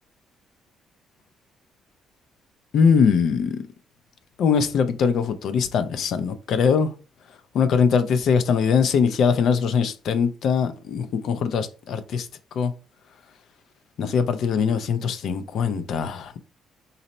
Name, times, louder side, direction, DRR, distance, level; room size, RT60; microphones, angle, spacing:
voice 1, 2.7-3.6 4.4-6.9 7.5-12.3 12.6-12.7 14.0-16.4, left 6 dB, 65° left, 0.4 m, -21 dB
4.0 x 2.0 x 4.2 m
cardioid pair, 135°, 0 cm